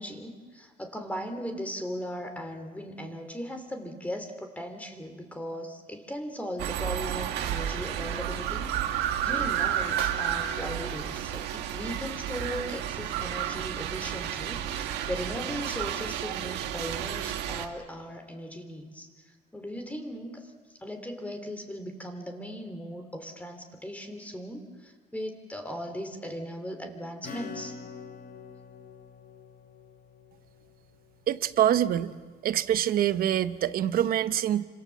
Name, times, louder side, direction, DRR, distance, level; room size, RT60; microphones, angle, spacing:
voice 1, 0.0-19.1 19.5-20.5 20.8-27.8, equal, 10° left, 5 dB, 2.9 m, -38 dB
sound 1, 6.6-17.7, right 10 dB, 85° right, 1.7 m, -31 dB
Acoustic guitar / Strum, 27.2-31.5, left 4 dB, 55° left, 3.2 m, -45 dB
voice 2, 31.3-32.1 32.4-34.7, right 11 dB, 60° right, 13 dB, 1.0 m, -25 dB
28.5 x 26.0 x 7.6 m, 1.4 s
cardioid pair, 110°, 17 cm